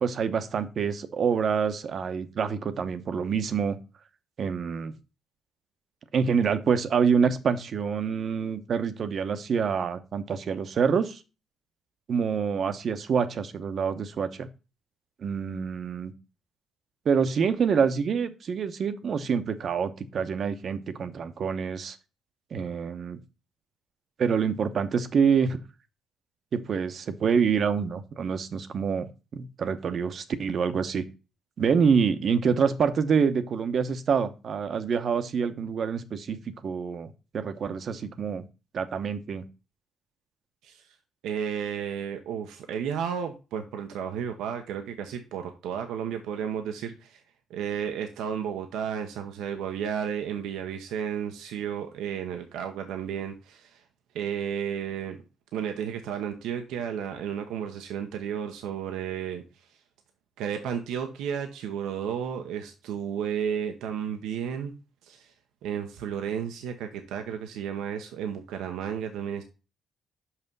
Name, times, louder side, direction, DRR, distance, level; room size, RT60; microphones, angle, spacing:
voice 1, 0.0-3.8 4.4-4.9 6.1-11.2 12.1-14.5 15.2-16.1 17.0-22.0 22.5-23.2 24.2-25.6 26.5-31.1 31.6-38.4 38.7-39.4, right 6 dB, 55° right, 11 dB, 0.9 m, -26 dB
voice 2, 41.2-47.2 47.5-53.8 54.1-55.2 55.5-59.4 60.4-64.7 65.0-65.3 65.6-69.4, right 8 dB, 90° right, 5 dB, 0.8 m, -32 dB
5.8 x 5.7 x 5.4 m, 0.31 s
cardioid pair, 90°, 0 cm